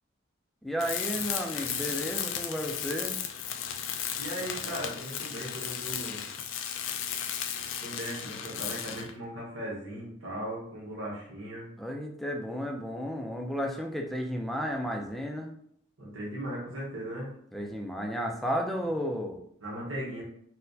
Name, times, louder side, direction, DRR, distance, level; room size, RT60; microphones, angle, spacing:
voice 1, 0.6-3.2 11.8-15.5 17.5-19.4, equal, ahead, 1 dB, 0.4 m, -33 dB
Tools, 0.8-9.2, left 8 dB, 70° left, 0.3 m, -35 dB
voice 2, 4.1-6.2 7.8-11.7 16.0-17.3 19.6-20.2, equal, 85° right, -4 dB, 1.0 m, -38 dB
4.2 x 2.1 x 2.6 m, 0.68 s
head